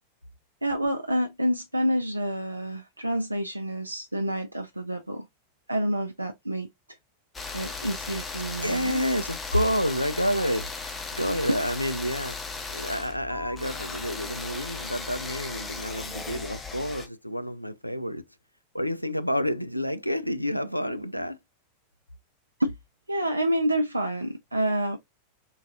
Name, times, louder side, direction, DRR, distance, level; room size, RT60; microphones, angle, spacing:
voice 1, 0.6-5.3 5.7-6.7 7.5-9.0 10.4-10.5 11.5-11.6 22.6-22.7 23.1-25.0, equal, 85° right, 0.3 m, -28 dB
sound 1, 7.3-17.1, left 4 dB, 15° left, 0.6 m, -36 dB
voice 2, 8.6-10.7 11.1-12.4 12.7-18.2 18.7-21.4, equal, 90° left, 0.3 m, -29 dB
3.8 x 2.3 x 2.5 m
figure-of-eight pair, 90°, 0 cm